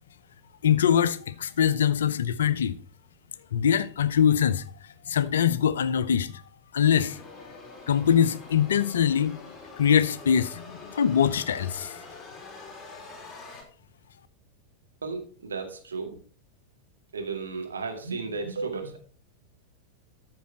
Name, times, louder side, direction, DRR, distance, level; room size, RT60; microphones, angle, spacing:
voice 1, 0.6-2.8 3.5-4.6 5.1-6.4 6.7-7.2 7.5-7.6 7.9-9.4 9.8-11.9, left 8 dB, 65° left, 0.7 m, -23 dB
sound 1, 6.9-13.6, left 3 dB, 15° left, 3.3 m, -45 dB
voice 2, 15.0-16.2 17.1-19.0, right 4 dB, 70° right, 2.2 m, -34 dB
13.5 x 6.1 x 4.5 m
figure-of-eight pair, 90°, 0 cm